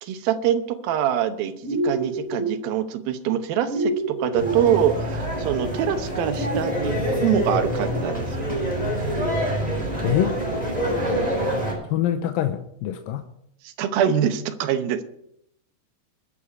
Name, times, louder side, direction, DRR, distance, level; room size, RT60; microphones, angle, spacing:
voice 1, 0.0-8.6 13.6-15.0, right 9 dB, 80° right, 2.7 m, -24 dB
sound 1, 1.6-2.5 3.7-4.6, right 2 dB, 65° right, 8.3 m, -26 dB
sound 2, 4.4-11.7, equal, 10° right, 3.4 m, -26 dB
voice 2, 10.0-10.4 11.9-13.3, left 11 dB, 80° left, 2.4 m, -24 dB
21.5 x 7.2 x 4.8 m
omnidirectional pair, 4.2 m